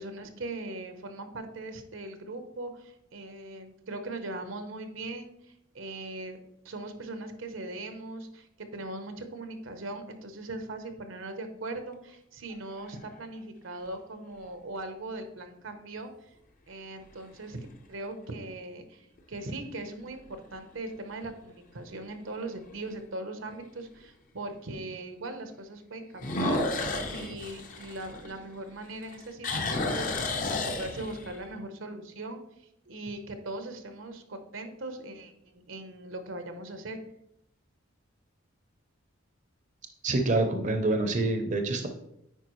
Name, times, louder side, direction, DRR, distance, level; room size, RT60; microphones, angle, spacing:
voice 1, 0.0-6.4 6.6-16.3 16.7-17.6 17.9-30.4 30.6-37.0, right 2 dB, 80° right, 7 dB, 0.9 m, -40 dB
sound 1, 12.5-13.2 13.9-14.0 19.2-19.6 20.1-20.2 20.8-20.9 21.1-21.2 22.7-22.8 26.2-28.7 29.0-31.4, left 2 dB, 45° left, 0.8 m, -32 dB
voice 2, 40.0-41.9, right 2 dB, 40° right, 5 dB, 0.6 m, -26 dB
9.2 x 4.7 x 3.1 m, 0.79 s
head